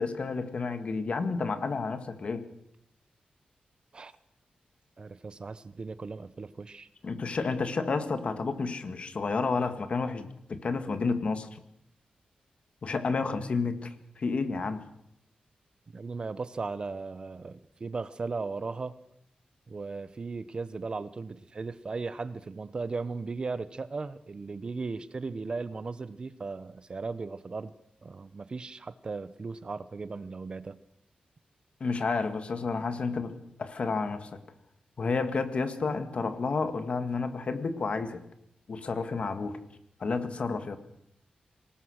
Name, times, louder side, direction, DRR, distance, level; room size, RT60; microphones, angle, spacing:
voice 1, 0.0-2.5 7.0-11.5 12.8-14.8 31.8-34.3 35.0-38.2 38.7-39.6 40.0-40.8, left 4 dB, 45° left, 9 dB, 1.9 m, -30 dB
voice 2, 5.0-6.9 15.9-19.0 19.7-27.7 28.0-30.8, right 4 dB, 35° right, 15 dB, 0.8 m, -37 dB
25.0 x 19.0 x 6.5 m, 0.76 s
wide cardioid pair, 160°, 3 cm